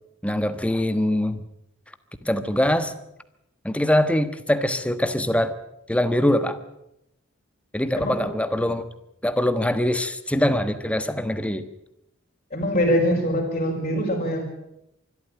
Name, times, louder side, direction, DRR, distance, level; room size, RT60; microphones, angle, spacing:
voice 1, 0.2-1.4 2.2-2.9 3.6-5.5 5.9-6.6 7.7-8.9 9.2-11.6, left 1 dB, 5° left, 11 dB, 1.3 m, -23 dB
voice 2, 8.0-8.3 12.5-14.4, equal, 35° left, -4 dB, 4.9 m, -23 dB
24.5 x 13.0 x 8.9 m, 0.83 s
head